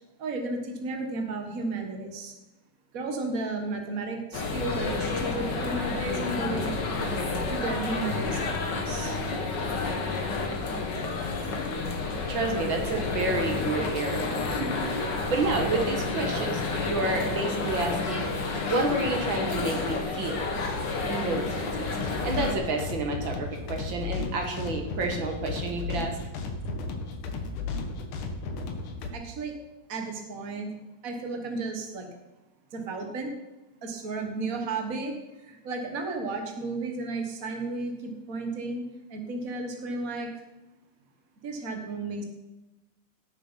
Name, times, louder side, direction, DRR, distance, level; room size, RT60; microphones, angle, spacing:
voice 1, 0.2-2.3 2.9-6.8 7.2-9.2 29.1-29.5 29.9-30.7 31.0-32.1 32.7-33.3 33.8-38.8 39.1-40.3 41.4-42.2, right 3 dB, 80° right, 4 dB, 0.7 m, -33 dB
sound 1, 4.3-22.5, left 3 dB, 50° left, 1.4 m, -30 dB
voice 2, 12.0-18.3 18.7-20.5 21.1-26.2, right 2 dB, 45° right, 4 dB, 1.6 m, -30 dB
sound 2, 22.0-29.1, left 3 dB, 65° left, 2.8 m, -34 dB
18.0 x 6.9 x 5.7 m, 1.0 s
omnidirectional pair, 4.3 m